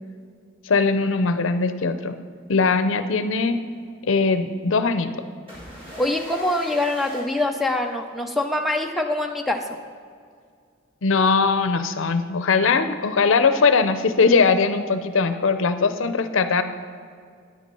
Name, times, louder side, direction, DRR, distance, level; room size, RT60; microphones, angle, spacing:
voice 1, 0.6-2.2 2.5-3.6 4.1-5.1 11.0-16.6, left 4 dB, 75° left, 10 dB, 0.6 m, -20 dB
sound 1, 5.5-8.3, equal, 25° right, 2.4 m, -41 dB
voice 2, 6.0-9.7, left 1 dB, ahead, 4 dB, 0.6 m, -24 dB
9.5 x 8.3 x 5.4 m, 2.2 s
head